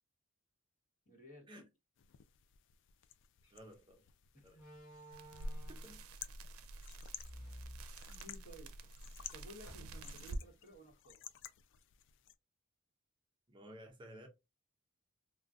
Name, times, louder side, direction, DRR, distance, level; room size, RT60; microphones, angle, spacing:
voice 1, 1.0-1.5 4.3-4.6 8.1-8.7 9.0-11.2, equal, 40° left, 1.0 m, -56 dB
sound 1, 2.0-12.3, left 11 dB, 60° left, 0.3 m, -55 dB
Slam, 3.4-3.6 4.5-6.1 7.1-8.5 8.9-9.0 9.6-10.3, equal, 90° left, 1.1 m, -54 dB
voice 2, 3.5-4.0 4.4-4.6 5.7-6.0 13.5-14.3, equal, 25° right, 0.5 m, -54 dB
sound 2, 5.1-10.5, right 1 dB, 85° right, 0.5 m, -47 dB
3.8 x 2.2 x 2.3 m
head